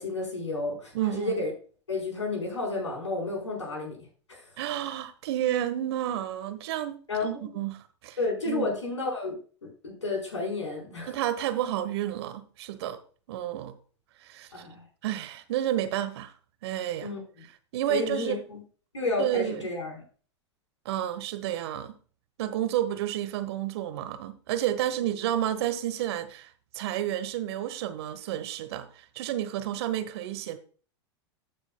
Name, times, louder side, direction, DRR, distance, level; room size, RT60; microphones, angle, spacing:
voice 1, 0.0-1.5 1.9-4.0 4.3-4.4 7.1-7.4 8.2-11.1 14.5-14.8 17.0-17.2 17.9-18.6 18.9-20.0, left 3 dB, 85° left, 4.8 m, -31 dB
voice 2, 0.9-1.4 4.6-8.2 8.5-8.7 11.1-13.0 13.3-13.8 14.2-14.7 15.0-16.3 16.6-17.1 17.7-18.4 19.2-19.7 20.8-21.9 22.4-30.6, right 12 dB, 65° right, 1.2 m, -31 dB
14.5 x 6.2 x 2.3 m
hypercardioid pair, 95°, 15 cm